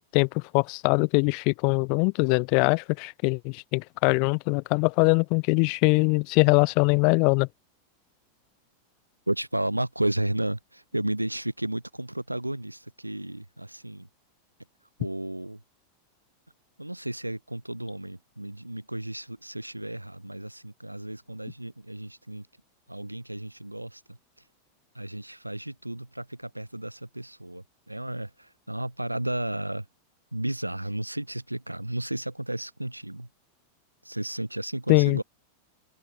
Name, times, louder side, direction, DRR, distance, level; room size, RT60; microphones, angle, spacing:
voice 1, 0.0-7.5 34.9-35.2, left 39 dB, 45° left, 0.4 m, -22 dB
voice 2, 9.3-14.1 15.0-15.6 16.8-22.5 22.9-24.0 24.9-29.8 30.3-33.3 34.0-35.2, right 1 dB, 85° right, 1.5 m, -33 dB
open air
figure-of-eight pair, 90°, 0 cm